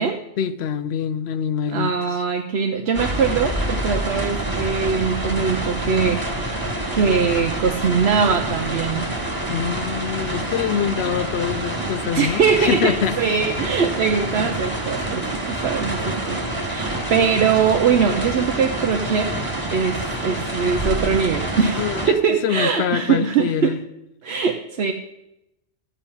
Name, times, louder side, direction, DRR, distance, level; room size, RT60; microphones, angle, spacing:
voice 1, 0.4-2.2 9.5-13.2 21.8-22.2 22.4-23.8, left 8 dB, 75° left, 0.9 m, -25 dB
voice 2, 1.7-6.6 6.9-9.1 12.1-16.4 16.6-19.3 19.7-21.8 22.1-23.8 24.2-24.9, right 6 dB, 75° right, 1.0 m, -21 dB
sound 1, 2.9-22.1, right 1 dB, 20° right, 1.7 m, -27 dB
12.5 x 8.4 x 5.6 m
omnidirectional pair, 1.1 m